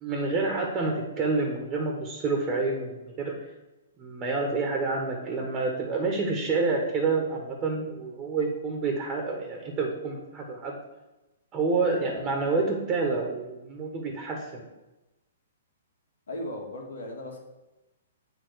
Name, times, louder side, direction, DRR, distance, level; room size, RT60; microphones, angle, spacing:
voice 1, 0.0-3.3 4.0-10.7 11.5-14.4, right 3 dB, 25° right, 1 dB, 1.4 m, -28 dB
voice 2, 16.3-17.4, left 1 dB, 80° left, 0 dB, 2.1 m, -36 dB
7.8 x 3.7 x 6.5 m, 1.0 s
hypercardioid pair, 130°, 0 cm